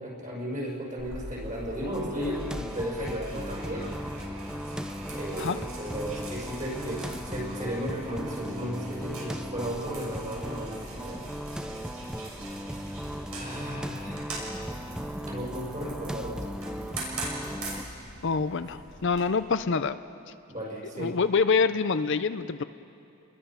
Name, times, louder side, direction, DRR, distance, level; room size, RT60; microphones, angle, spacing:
voice 1, 0.0-3.9 5.1-11.2 11.7-11.9 13.3-14.3 15.2-16.6 20.5-21.1, equal, 35° right, -3 dB, 5.3 m, -35 dB
sound 1, 1.0-19.2, right 1 dB, 70° right, 6.7 m, -42 dB
sound 2, 1.8-17.8, equal, 5° right, 0.5 m, -37 dB
voice 2, 18.2-20.0 21.0-22.6, left 5 dB, 55° left, 11 dB, 0.5 m, -26 dB
29.5 x 21.5 x 5.7 m, 2.7 s
head